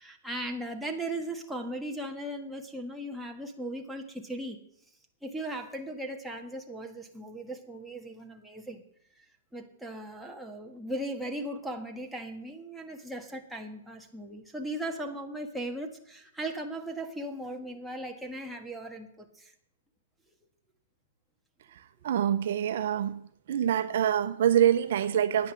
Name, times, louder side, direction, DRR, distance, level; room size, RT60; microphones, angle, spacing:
voice 1, 0.0-4.6 5.2-8.8 9.1-9.2 9.5-19.5, right 1 dB, 5° right, 1 dB, 1.5 m, -38 dB
voice 2, 22.0-23.2 23.5-25.5, right 10 dB, 60° right, 11 dB, 0.8 m, -25 dB
9.9 x 9.5 x 7.4 m, 0.70 s
hypercardioid pair, 140°, 0 cm